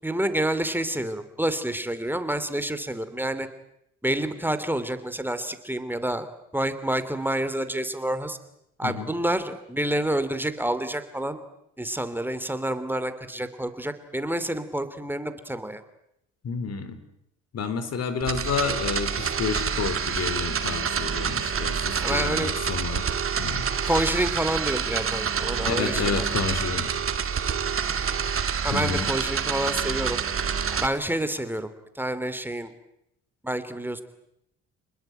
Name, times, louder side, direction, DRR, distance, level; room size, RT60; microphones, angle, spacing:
voice 1, 0.0-3.5 4.0-6.3 6.5-8.4 8.8-11.4 11.8-15.8 22.0-22.5 23.8-26.2 28.6-30.2 30.7-32.7 33.4-34.0, right 1 dB, 5° right, 11 dB, 2.9 m, -28 dB
voice 2, 16.4-17.0 17.5-23.7 25.7-26.9 28.7-29.1, left 5 dB, 55° left, 12 dB, 4.0 m, -30 dB
sound 1, 18.2-30.9, right 7 dB, 45° right, 2.6 m, -27 dB
29.5 x 20.5 x 9.1 m, 0.80 s
cardioid pair, 90°, 30 cm